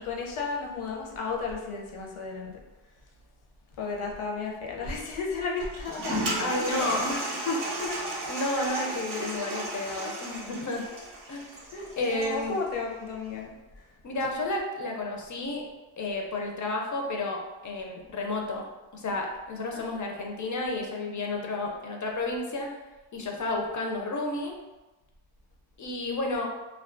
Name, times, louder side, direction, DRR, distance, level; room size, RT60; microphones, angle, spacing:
voice 1, 0.0-2.6 3.8-6.2 7.8-8.0 11.7-14.2 19.7-20.0, left 4 dB, 75° left, 0 dB, 0.6 m, -34 dB
Toilet flush, 5.6-12.5, right 1 dB, 45° right, 0.6 m, -34 dB
voice 2, 6.4-7.2 7.5-7.8 8.3-10.8 11.3-11.5 12.0-12.6 14.0-15.7 16.0-18.7 18.9-22.7 23.1-24.5 25.8-26.5, left 2 dB, 40° left, 1 dB, 0.4 m, -31 dB
2.2 x 2.2 x 2.4 m, 1.1 s
wide cardioid pair, 100°, 50 cm